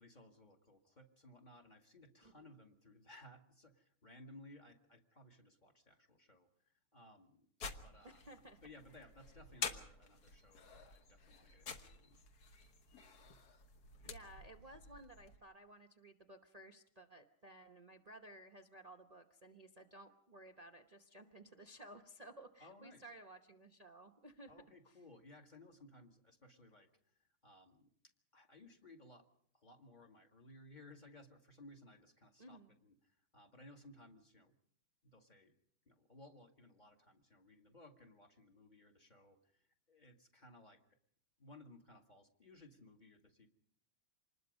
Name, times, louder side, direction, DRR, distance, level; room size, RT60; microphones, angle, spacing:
voice 1, 0.0-7.5 7.8-8.2 8.6-12.2 14.2-14.4 22.6-23.0 24.5-27.9 28.3-29.3 29.5-34.5 35.0-35.5 35.9-40.8 41.4-43.5, left 1 dB, 20° left, 3 dB, 1.9 m, -60 dB
sound 1, 7.6-15.4, left 5 dB, 50° left, 1.7 m, -49 dB
voice 2, 8.0-8.6 14.0-24.5 24.9-25.0 32.4-32.7, right 1 dB, 40° right, 3 dB, 0.5 m, -57 dB
26.5 x 20.5 x 5.4 m, 0.64 s
omnidirectional pair, 2.4 m